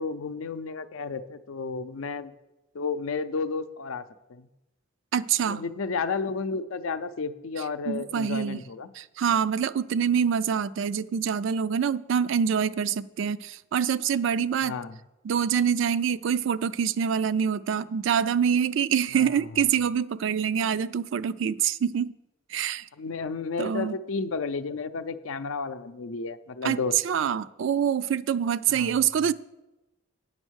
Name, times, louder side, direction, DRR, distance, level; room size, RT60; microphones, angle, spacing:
voice 1, 0.0-2.3 2.7-4.0 4.3-4.5 5.4-8.9 14.6-14.9 19.1-19.4 23.0-26.9 28.7-29.0, left 4 dB, 85° left, 10 dB, 0.5 m, -32 dB
voice 2, 5.1-5.6 7.9-8.6 8.9-14.8 15.2-22.1 22.5-22.9 23.6-24.0 26.6-29.3, right 7 dB, 65° right, 16 dB, 0.3 m, -25 dB
8.9 x 6.4 x 6.3 m, 0.99 s
head